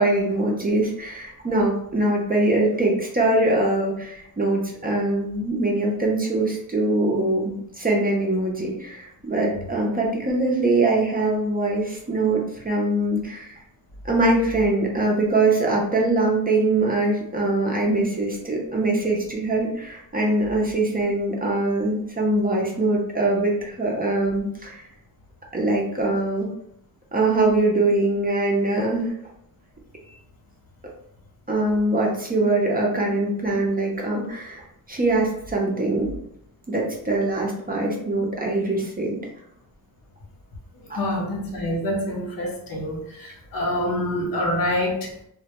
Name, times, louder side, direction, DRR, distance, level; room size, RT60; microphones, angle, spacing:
voice 1, 0.0-13.6 14.0-24.9 25.5-26.5 27.1-29.1 31.5-36.1 36.7-39.2 40.9-41.0, right 2 dB, 25° right, -1 dB, 0.5 m, -23 dB
voice 2, 40.9-45.1, left 1 dB, 65° left, 0 dB, 0.7 m, -26 dB
2.1 x 2.1 x 2.8 m, 0.73 s
wide cardioid pair, 115°, 37 cm